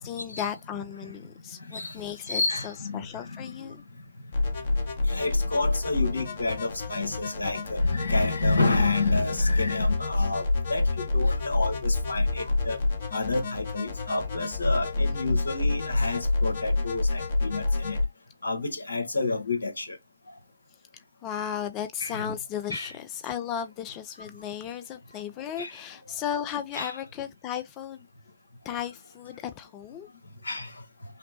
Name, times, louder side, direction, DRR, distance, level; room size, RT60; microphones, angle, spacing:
voice 1, 0.0-3.8 15.0-15.1 21.2-28.1 28.6-30.1, left 9 dB, 25° left, 0.5 m, -35 dB
voice 2, 2.3-3.7 5.1-12.8 13.1-18.0 18.4-20.0 22.0-22.3 22.7-22.9 25.6-25.8 26.7-27.0 30.4-30.7, left 3 dB, 80° left, 1.4 m, -30 dB
sound 1, 4.3-18.0, left 2 dB, 55° left, 1.4 m, -27 dB
5.7 x 2.1 x 2.7 m
figure-of-eight pair, 130°, 0 cm